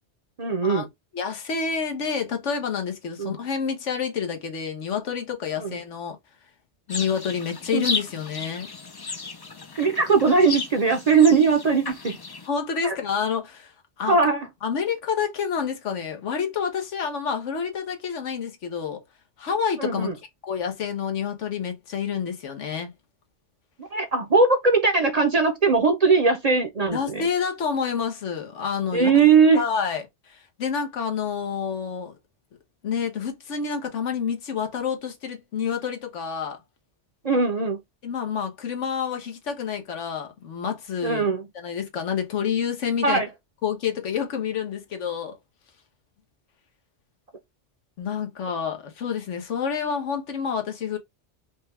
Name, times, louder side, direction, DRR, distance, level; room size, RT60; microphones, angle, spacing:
voice 1, 0.4-0.9 3.2-3.3 5.6-5.7 7.7-7.8 9.8-12.2 12.8-12.9 14.1-14.5 19.8-20.1 23.9-27.2 28.9-29.6 37.2-37.8 41.0-41.5 43.0-43.3, right 4 dB, 40° right, 0.7 m, -20 dB
voice 2, 1.1-6.2 6.9-8.7 11.3-11.4 12.5-14.2 14.6-19.0 19.4-20.1 20.4-22.9 26.9-29.1 29.5-32.1 32.8-36.6 38.0-41.2 41.5-43.2 43.6-45.3 48.0-51.0, left 6 dB, 85° left, 1.2 m, -28 dB
sound 1, 6.9-12.5, left 4 dB, 40° left, 0.3 m, -34 dB
5.0 x 2.2 x 3.2 m
omnidirectional pair, 1.2 m